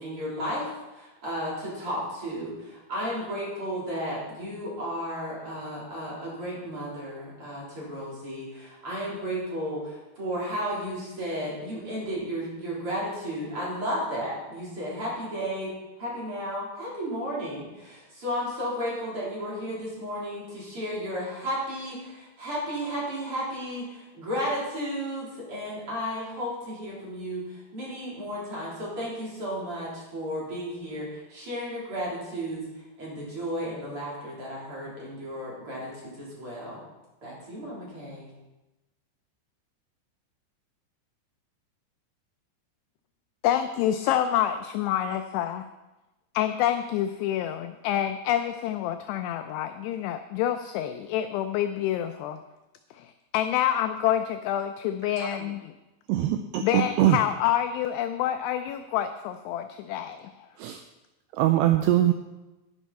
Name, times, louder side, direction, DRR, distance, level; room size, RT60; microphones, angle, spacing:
voice 1, 0.0-36.8 37.2-38.3, equal, 30° right, -6 dB, 4.1 m, -33 dB
voice 2, 43.4-45.7 46.3-52.4 52.9-55.7 56.6-60.3, left 11 dB, 85° left, 8 dB, 2.4 m, -27 dB
voice 3, 56.1-57.2 60.6-60.8 61.3-62.1, right 13 dB, 85° right, 7 dB, 2.4 m, -22 dB
11.0 x 11.0 x 4.2 m, 1.0 s
omnidirectional pair, 5.3 m